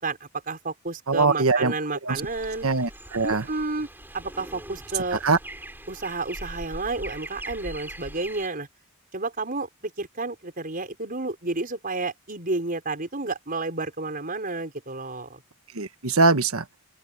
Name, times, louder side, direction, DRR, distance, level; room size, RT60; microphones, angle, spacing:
voice 1, 0.0-2.7 3.2-3.9 4.1-5.2 5.9-8.7 9.1-9.7 10.0-15.4, right 3 dB, 40° right, 5.1 m, -31 dB
voice 2, 1.1-1.7 2.0-2.2 2.6-3.4 5.2-5.4 15.7-16.6, right 3 dB, 70° right, 1.4 m, -22 dB
sound 1, 2.1-8.5, right 1 dB, 10° right, 7.3 m, -41 dB
open air
head